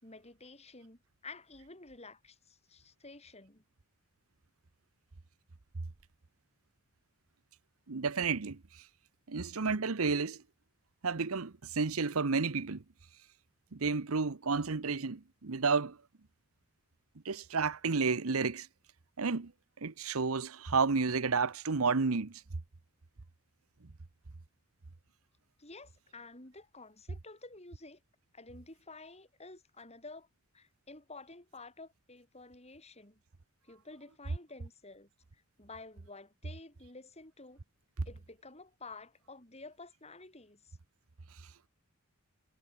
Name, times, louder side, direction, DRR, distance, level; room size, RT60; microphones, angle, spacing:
voice 1, 0.0-3.6 25.6-28.0 28.3-30.3 30.5-33.2 33.6-37.6 38.1-40.8, left 3 dB, 30° left, 5.5 m, -51 dB
voice 2, 7.9-8.6 9.3-10.4 11.0-12.8 13.7-16.0 17.2-18.7 19.2-19.5 19.8-22.3, right 4 dB, 80° right, 1.0 m, -31 dB
head